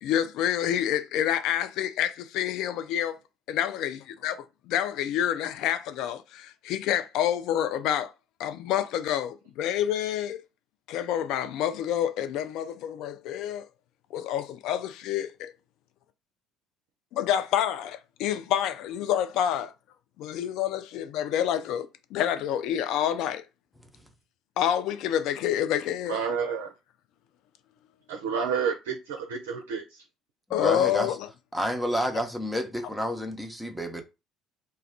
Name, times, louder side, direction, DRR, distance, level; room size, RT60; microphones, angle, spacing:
voice 1, 0.0-3.2 3.5-8.1 8.4-10.4 10.9-13.7 14.1-15.5 17.1-19.7 20.2-23.4 24.6-26.2 30.5-31.3, left 10 dB, 60° left, 0.3 m, -28 dB
voice 2, 26.1-26.7 28.1-29.8, right 6 dB, 70° right, 0.4 m, -29 dB
voice 3, 30.5-31.1 31.5-34.0, equal, ahead, 0.7 m, -29 dB
2.3 x 2.2 x 3.5 m
figure-of-eight pair, 55°, 0 cm